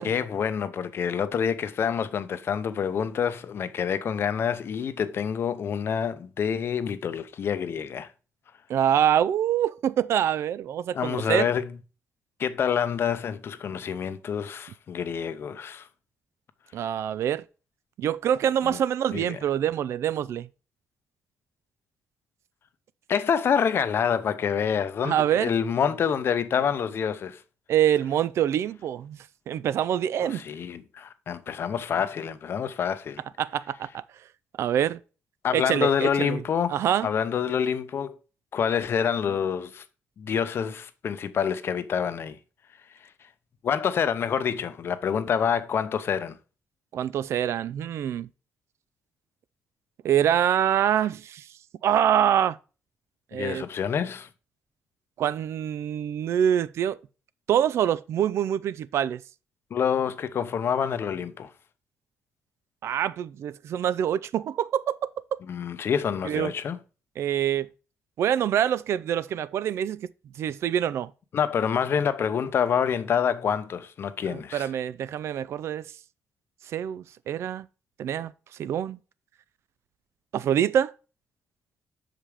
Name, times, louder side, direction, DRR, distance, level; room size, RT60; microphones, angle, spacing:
voice 1, 0.0-8.1 10.9-11.7 12.4-15.9 18.6-18.8 19.1-19.4 23.1-27.4 30.2-33.2 35.4-38.2 38.5-39.8 40.2-42.4 43.6-46.4 53.3-54.3 59.7-61.5 65.4-66.8 71.3-74.7, left 7 dB, 55° left, 0.7 m, -27 dB
voice 2, 8.7-11.5 16.7-17.5 18.0-20.5 25.0-25.5 27.7-29.2 29.5-30.4 33.4-34.0 34.6-35.0 35.5-36.4 36.7-37.1 46.9-48.3 50.0-51.4 51.8-52.6 53.3-53.6 55.2-57.0 57.5-59.2 62.8-65.4 66.2-66.5 67.2-67.7 68.2-70.1 70.4-71.1 74.3-75.8 76.7-77.7 78.0-78.3 78.6-79.0 80.3-80.9, right 10 dB, 70° right, 0.4 m, -25 dB
5.8 x 5.2 x 4.8 m
cardioid pair, 95°, 5 cm